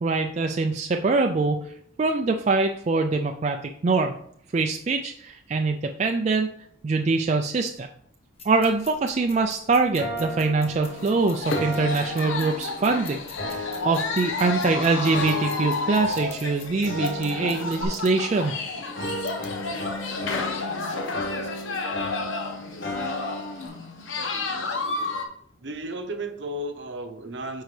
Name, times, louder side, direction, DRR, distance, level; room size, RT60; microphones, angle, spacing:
voice 1, 0.0-4.1 4.5-6.5 6.8-7.9 8.4-18.6, right 3 dB, 35° right, 4 dB, 0.3 m, -24 dB
sound 1, 8.4-17.8, left 3 dB, 30° left, 1.1 m, -46 dB
sound 2, 10.0-12.9 13.4-14.7 15.1-16.5 16.9-18.6 19.0-23.7, left 1 dB, 55° left, 1.1 m, -35 dB
sound 3, 10.9-25.3, left 3 dB, 80° left, 1.1 m, -31 dB
voice 2, 25.6-27.6, right 1 dB, 60° right, 7 dB, 0.8 m, -33 dB
9.0 x 4.6 x 3.3 m, 0.69 s
head